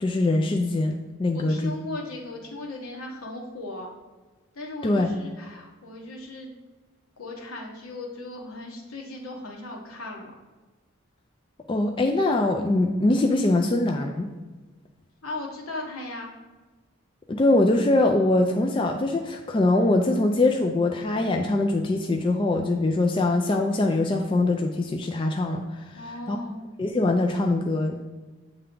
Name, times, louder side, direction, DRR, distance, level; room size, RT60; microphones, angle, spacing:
voice 1, 0.0-1.7 4.8-5.1 11.7-14.3 17.3-26.0 26.3-26.4 26.8-28.0, left 2 dB, 25° left, 2 dB, 0.3 m, -23 dB
voice 2, 1.3-3.9 4.5-6.5 7.2-10.3 15.2-16.3 25.9-26.6, left 2 dB, 80° left, -1 dB, 1.3 m, -37 dB
8.1 x 3.3 x 3.7 m, 1.3 s
head